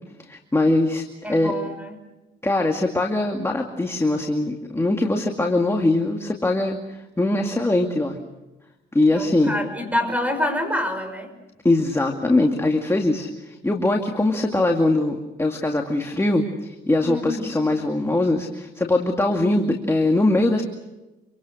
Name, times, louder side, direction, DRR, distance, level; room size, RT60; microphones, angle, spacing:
voice 1, 0.3-1.5 2.4-8.2 8.9-9.6 11.6-20.6, left 2 dB, 15° left, 2 dB, 2.3 m, -22 dB
voice 2, 1.2-2.0 9.1-11.3 17.0-17.5, left 1 dB, 5° right, 8 dB, 5.8 m, -26 dB
27.0 x 25.0 x 6.4 m, 1.0 s
cardioid pair, 90°, 20 cm